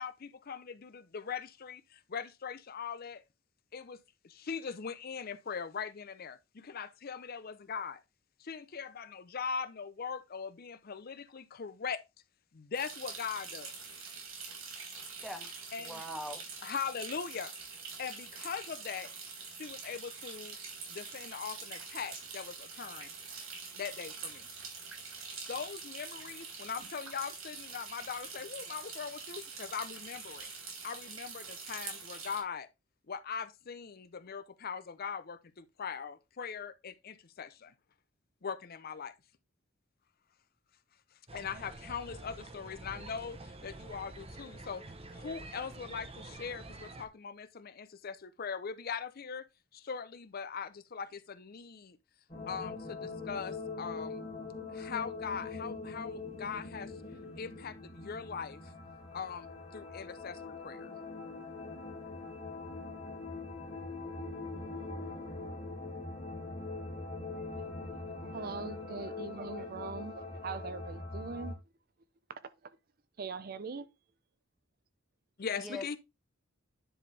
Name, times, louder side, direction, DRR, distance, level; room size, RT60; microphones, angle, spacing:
voice 1, 0.0-3.2 3.7-8.0 8.4-12.0 12.5-13.7 15.7-16.0 16.6-17.5 18.0-19.1 19.5-20.6 20.9-23.1 23.7-24.5 25.5-30.5 30.8-32.7 33.1-37.7 38.4-39.1 41.3-44.8 45.1-49.5 49.7-52.0 52.5-54.2 54.7-56.9 57.4-58.7 59.1-59.5 59.7-60.9 75.4-76.0, left 6 dB, 45° left, 0.5 m, -41 dB
sound 1, 12.7-32.4, right 5 dB, 80° right, 3.5 m, -45 dB
voice 2, 15.2-15.5 15.8-16.4 75.6-76.0, left 1 dB, ahead, 1.3 m, -42 dB
sound 2, 41.3-47.1, right 2 dB, 30° right, 0.9 m, -48 dB
sound 3, 52.3-71.5, left 3 dB, 30° left, 2.4 m, -42 dB
voice 3, 67.5-67.9 68.2-71.6 73.2-73.9, right 4 dB, 45° right, 0.5 m, -42 dB
10.0 x 4.3 x 3.3 m
head